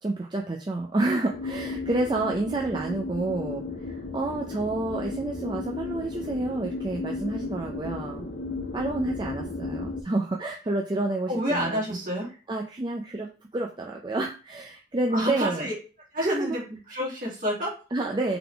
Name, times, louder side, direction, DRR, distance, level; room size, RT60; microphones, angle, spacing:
voice 1, 0.0-8.3 8.7-11.8 12.5-13.3 13.5-15.7 16.2-16.6 17.9-18.4, right 2 dB, 25° right, 1 dB, 0.4 m, -29 dB
sound 1, 1.3-10.0, left 3 dB, 55° left, 0.6 m, -34 dB
voice 2, 11.3-12.3 15.1-15.7 16.1-17.7, equal, 45° right, -5 dB, 2.1 m, -29 dB
3.8 x 3.8 x 3.4 m, 0.36 s
head